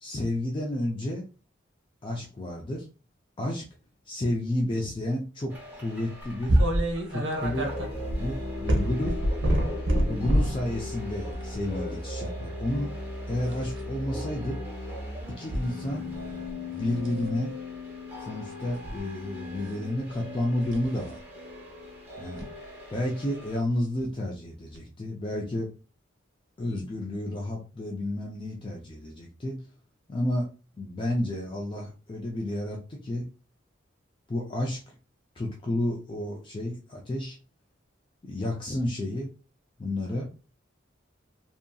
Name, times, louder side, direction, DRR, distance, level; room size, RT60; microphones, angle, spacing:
voice 1, 0.0-1.2 2.0-2.9 3.4-3.7 4.1-6.6 7.1-7.7 8.2-9.2 10.1-12.9 13.3-14.6 15.4-16.1 16.8-17.5 18.2-21.2 22.2-22.4 22.9-25.7 26.6-29.6 30.1-30.5 30.8-33.2 34.3-35.0 35.4-37.4 38.2-39.3 39.8-40.3, left 1 dB, 25° left, -1 dB, 0.4 m, -31 dB
sound 1, 5.5-23.6, left 1 dB, 10° right, 0.9 m, -38 dB
sound 2, 6.5-10.6 11.3-11.6 13.4-13.8 15.5-15.6 16.1-16.5 17.0-17.2 18.7-19.0 20.7-20.9 22.4-22.5 24.0-24.1 24.7-24.8, right 1 dB, 75° right, 0.7 m, -26 dB
2.7 x 2.6 x 2.2 m, 0.34 s
head